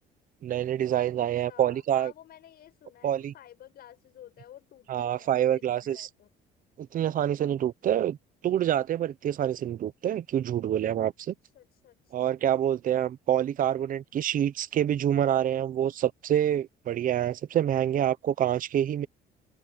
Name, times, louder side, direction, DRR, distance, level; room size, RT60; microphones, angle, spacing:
voice 1, 0.4-2.1 3.0-3.3 4.9-6.1 6.8-8.2 8.4-11.3 12.1-19.1, right 10 dB, 45° right, 0.9 m, -27 dB
voice 2, 1.2-6.3 11.3-12.1, left 11 dB, 60° left, 7.1 m, -52 dB
open air
cardioid pair, 140°, 19 cm